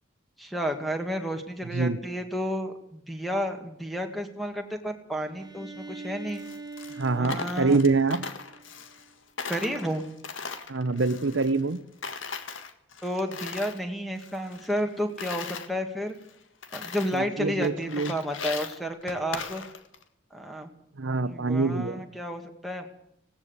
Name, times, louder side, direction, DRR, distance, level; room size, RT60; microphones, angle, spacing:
voice 1, 0.4-6.4 7.2-7.8 9.5-10.0 13.0-16.2 16.7-19.6 20.3-20.7 21.2-22.9, equal, ahead, 5 dB, 2.0 m, -31 dB
Bowed string instrument, 5.4-9.1, right 3 dB, 20° right, 1.3 m, -43 dB
Coin (dropping), 6.3-9.1 9.4-11.8 12.0-13.8 14.2-15.7 16.2-16.3 16.6-17.3 17.6-20.0, left 5 dB, 80° left, 1.8 m, -38 dB
voice 2, 7.0-8.3 10.7-11.8 17.1-18.1 21.0-22.0, right 3 dB, 75° right, 12 dB, 0.9 m, -25 dB
19.0 x 17.0 x 8.2 m, 0.75 s
head